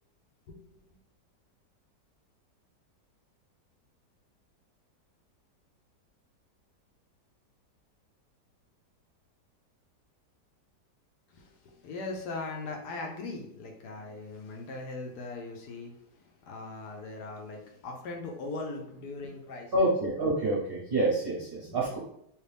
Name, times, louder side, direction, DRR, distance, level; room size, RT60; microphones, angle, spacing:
voice 1, 11.3-19.9 21.7-21.8, left 3 dB, 70° left, 1 dB, 1.2 m, -40 dB
voice 2, 19.7-22.0, right 1 dB, 50° right, -5 dB, 0.7 m, -27 dB
3.2 x 2.9 x 3.3 m, 0.74 s
omnidirectional pair, 1.9 m